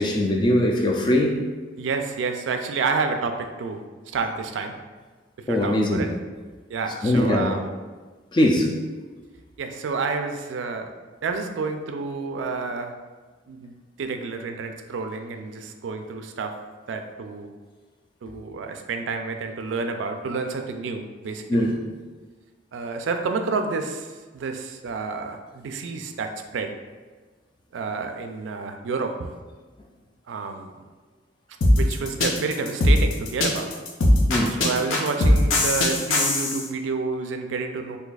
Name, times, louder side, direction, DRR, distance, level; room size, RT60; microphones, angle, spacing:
voice 1, 0.0-1.4 5.5-6.0 7.0-7.5 8.3-8.7 21.5-21.8 34.3-34.6, left 1 dB, 25° left, 1 dB, 0.3 m, -21 dB
voice 2, 1.8-4.7 5.5-6.1 6.7-7.7 9.6-10.9 11.2-13.0 13.5-16.5 16.9-17.5 18.2-21.7 22.7-26.7 27.7-29.3 30.3-30.7 31.8-33.7 34.5-38.0, right 4 dB, 80° right, 6 dB, 0.3 m, -29 dB
sound 1, 31.6-36.6, left 1 dB, 90° left, 0.5 m, -19 dB
2.6 x 2.3 x 3.9 m, 1.4 s
head